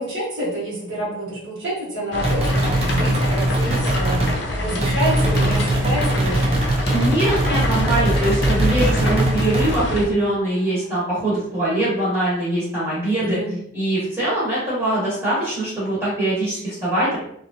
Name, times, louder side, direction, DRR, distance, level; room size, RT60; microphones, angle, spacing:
voice 1, 0.0-6.5 13.2-13.5, equal, 55° right, -9 dB, 1.4 m, -28 dB
sound 1, 2.1-10.1, left 1 dB, 55° left, 0.5 m, -26 dB
sound 2, 2.2-4.4 4.8-9.8, right 1 dB, 30° right, 0.5 m, -21 dB
sound 3, 5.9-11.7, left 1 dB, 25° left, 1.0 m, -32 dB
voice 2, 6.9-13.4 13.7-17.2, right 1 dB, 15° right, -10 dB, 1.1 m, -22 dB
2.8 x 2.6 x 2.6 m, 0.74 s
head